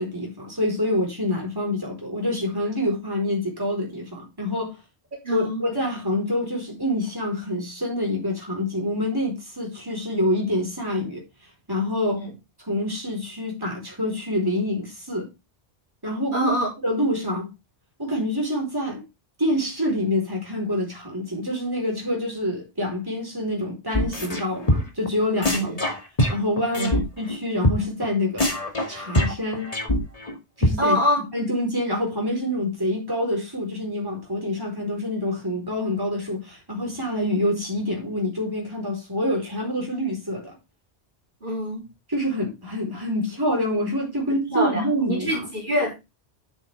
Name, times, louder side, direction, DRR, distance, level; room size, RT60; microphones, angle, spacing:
voice 1, 0.0-4.8 5.3-11.2 11.7-12.2 12.7-15.3 16.0-16.5 16.8-17.5 18.0-19.0 19.4-26.0 26.3-28.5 28.9-29.7 30.6-31.0 31.3-40.6 42.1-45.5, left 1 dB, 20° right, 4.4 m, -26 dB
voice 2, 5.2-5.8 12.1-12.3 16.3-16.7 25.5-25.8 26.7-27.0 30.8-31.2 41.4-41.9 44.5-46.0, equal, 50° right, 3.7 m, -25 dB
sound 1, 23.9-24.4 24.7-25.1 25.4-27.0 27.3-27.4 27.6-27.8 28.0-28.1 28.4-30.3 30.6-30.7, left 1 dB, 35° left, 2.3 m, -23 dB
8.8 x 8.7 x 3.5 m
omnidirectional pair, 1.1 m